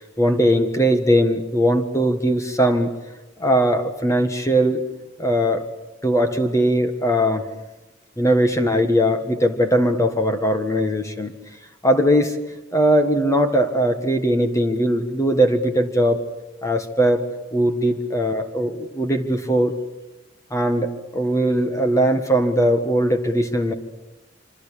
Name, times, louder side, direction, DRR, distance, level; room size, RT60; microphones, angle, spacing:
voice 1, 0.0-2.9 3.4-4.8 5.2-5.6 6.0-7.5 8.2-11.3 11.8-12.4 12.7-16.2 16.6-17.3 17.5-19.8 20.5-23.7, equal, 15° left, 7 dB, 1.6 m, -20 dB
26.0 x 26.0 x 8.5 m, 1.0 s
head